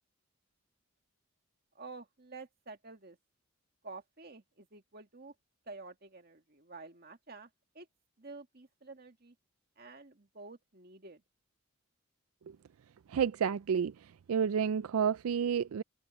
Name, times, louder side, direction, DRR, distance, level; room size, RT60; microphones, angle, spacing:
voice 1, 1.8-3.2 3.8-5.3 5.7-7.5 7.7-7.9 8.2-9.4 9.8-11.2, right 3 dB, 45° right, 2.0 m, -50 dB
voice 2, 13.1-13.9 14.3-15.8, right 7 dB, 90° right, 0.4 m, -30 dB
head